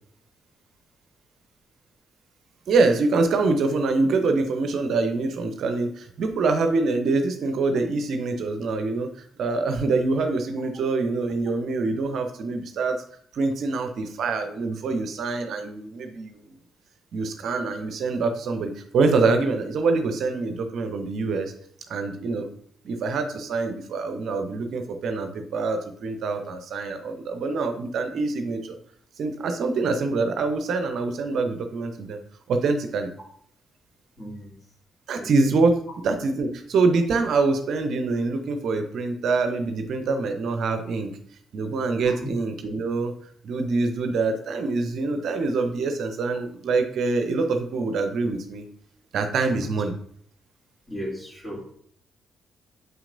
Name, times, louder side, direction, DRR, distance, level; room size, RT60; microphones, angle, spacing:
voice 1, 2.7-13.0 13.3-16.4 17.1-21.5 21.9-22.5 22.8-28.8 29.2-32.2 32.5-33.1 35.1-35.7 36.0-41.2 41.5-43.1 43.4-48.6 49.1-49.9, right 3 dB, 60° right, 6 dB, 0.6 m, -25 dB
voice 2, 34.2-34.5 35.2-35.3 42.0-42.2 49.4-49.5 50.9-51.7, equal, 30° left, -3 dB, 2.9 m, -36 dB
7.3 x 5.9 x 2.5 m, 0.63 s
figure-of-eight pair, 40°, 0 cm